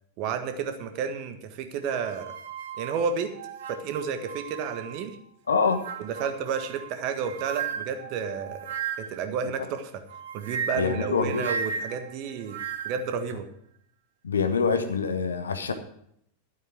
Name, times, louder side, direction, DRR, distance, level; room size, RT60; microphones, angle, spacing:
voice 1, 0.2-2.3 2.8-3.3 3.7-5.2 6.0-8.7 9.0-10.0 10.3-13.5, right 6 dB, 45° right, 8 dB, 1.5 m, -31 dB
sound 1, 1.8-5.1 5.6-9.3 10.1-13.1, right 6 dB, 60° right, 1.5 m, -36 dB
voice 2, 5.5-5.8 10.8-11.4 14.2-15.7, left 5 dB, 70° left, 9 dB, 1.2 m, -25 dB
12.5 x 8.3 x 6.1 m, 0.71 s
figure-of-eight pair, 90°, 0 cm